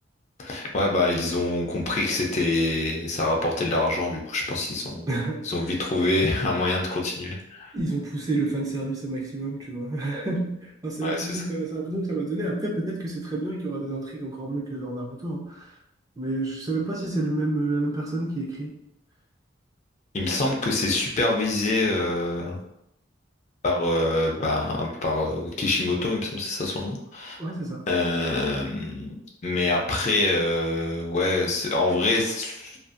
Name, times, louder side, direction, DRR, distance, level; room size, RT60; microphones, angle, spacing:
voice 1, 0.4-5.2 5.4-7.7 11.0-11.4 20.1-22.6 23.6-27.4 27.9-29.2 29.4-32.8, left 2 dB, 40° left, -1 dB, 0.4 m, -25 dB
voice 2, 5.1-5.4 7.7-15.6 16.2-18.7 27.4-27.9, right 2 dB, 20° right, -3 dB, 0.4 m, -29 dB
2.5 x 2.4 x 2.4 m, 0.79 s
head